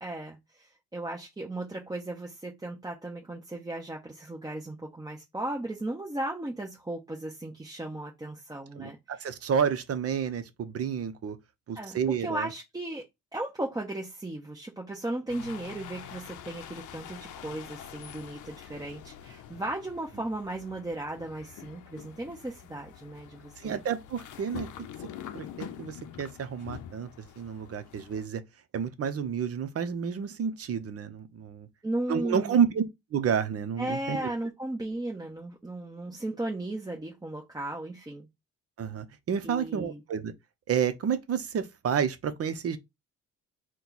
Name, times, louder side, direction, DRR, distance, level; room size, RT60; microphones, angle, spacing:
voice 1, 0.0-9.3 11.7-13.0 13.3-23.8 31.8-32.6 33.8-38.3 39.4-40.0, right 1 dB, 10° right, 1.0 m, -36 dB
voice 2, 8.8-11.4 11.7-12.5 23.6-24.7 25.3-27.1 27.4-28.4 28.7-31.7 32.1-32.8 33.1-34.3 38.8-40.3 40.7-42.8, right 7 dB, 50° right, 0.8 m, -30 dB
sound 1, 15.3-28.3, left 10 dB, 80° left, 0.6 m, -45 dB
4.3 x 2.3 x 4.0 m
cardioid pair, 90°, 30 cm